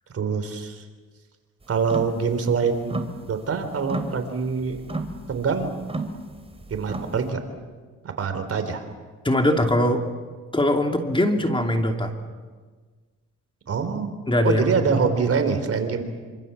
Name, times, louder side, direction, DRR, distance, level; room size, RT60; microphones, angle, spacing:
voice 1, 0.1-0.8 1.7-3.0 3.3-4.8 5.3-5.7 6.7-7.4 8.2-8.8 13.7-14.1 14.4-16.0, right 5 dB, 50° right, 7 dB, 4.0 m, -24 dB
sound 1, 1.8-2.2 2.5-3.5 3.8-7.3, right 2 dB, 20° right, 2.9 m, -33 dB
voice 2, 9.2-10.0 10.5-12.1 14.3-14.6, left 1 dB, 15° left, 4 dB, 2.8 m, -21 dB
27.0 x 26.0 x 7.2 m, 1.4 s
cardioid pair, 90°, 30 cm